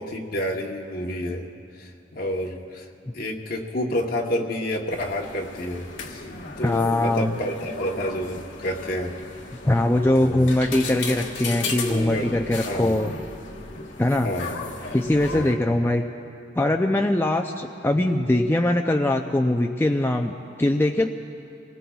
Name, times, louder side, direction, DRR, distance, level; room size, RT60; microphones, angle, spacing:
voice 1, 0.0-1.5 1.8-2.9 3.1-6.3 6.6-9.2 10.2-10.5 11.9-12.3 12.6-13.0 14.2-14.8 15.3-15.6, equal, 55° left, 0 dB, 1.0 m, -29 dB
sound 1, 4.9-15.6, left 3 dB, 85° left, 1.5 m, -36 dB
voice 2, 6.6-7.4 9.6-13.1 14.0-14.3 14.9-16.0 16.6-20.3 20.6-21.1, left 1 dB, 10° left, 3 dB, 0.4 m, -21 dB
27.0 x 20.0 x 2.3 m, 2.5 s
head